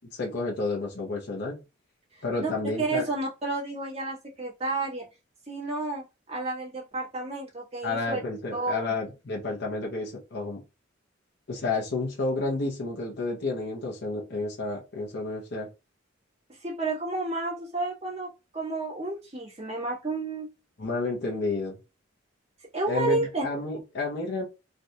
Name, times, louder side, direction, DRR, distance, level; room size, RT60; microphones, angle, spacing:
voice 1, 0.1-1.6 2.2-3.0 7.8-10.6 11.5-15.7 20.8-21.8 22.9-24.4, left 3 dB, 55° left, 0.8 m, -30 dB
voice 2, 2.4-5.0 5.5-8.2 8.5-8.9 16.6-20.5 22.7-23.4, right 2 dB, 35° right, 1.4 m, -31 dB
3.3 x 2.5 x 2.7 m
head